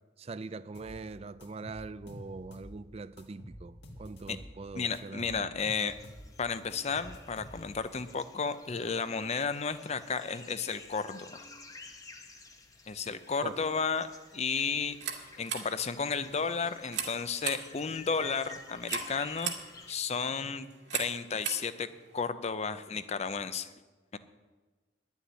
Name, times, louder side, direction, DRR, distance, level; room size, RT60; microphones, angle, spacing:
voice 1, 0.2-5.5 13.4-13.7, right 3 dB, 35° right, 0.4 m, -43 dB
sound 1, 0.7-1.0 1.4-2.8 3.2-4.5 4.9-6.3 6.7-7.9, equal, 65° left, 2.0 m, -48 dB
voice 2, 4.8-6.0 6.4-11.4 12.9-14.1 14.3-15.0 15.4-19.5 19.9-20.7 20.9-21.9 22.1-23.7 24.1-24.2, left 5 dB, 35° left, 0.6 m, -33 dB
sound 2, 5.7-19.9, left 3 dB, 20° left, 1.0 m, -51 dB
sound 3, 14.9-22.3, right 7 dB, 70° right, 1.9 m, -40 dB
11.0 x 7.1 x 9.5 m
head